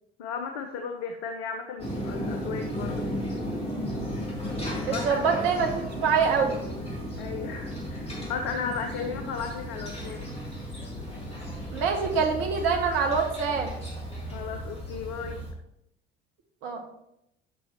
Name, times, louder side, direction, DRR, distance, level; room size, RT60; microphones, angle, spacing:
voice 1, 0.2-3.3 4.9-5.2 7.2-10.3 14.3-15.4, left 5 dB, 65° left, 4 dB, 0.9 m, -35 dB
sound 1, 1.8-15.5, equal, 20° left, 3.2 m, -35 dB
voice 2, 4.8-6.6 11.7-13.7 16.6-16.8, right 5 dB, 70° right, 3 dB, 1.2 m, -25 dB
11.5 x 5.4 x 3.1 m, 0.79 s
figure-of-eight pair, 60°, 32 cm